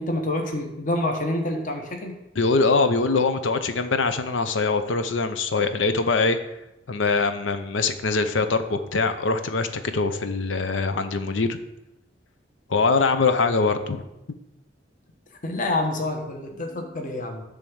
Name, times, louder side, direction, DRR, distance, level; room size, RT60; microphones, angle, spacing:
voice 1, 0.0-2.2 15.4-17.4, left 1 dB, 45° left, 3 dB, 1.1 m, -27 dB
voice 2, 2.4-6.4 6.9-11.6 12.7-14.0, left 4 dB, 80° left, 9 dB, 0.7 m, -23 dB
10.5 x 3.5 x 7.0 m, 0.93 s
head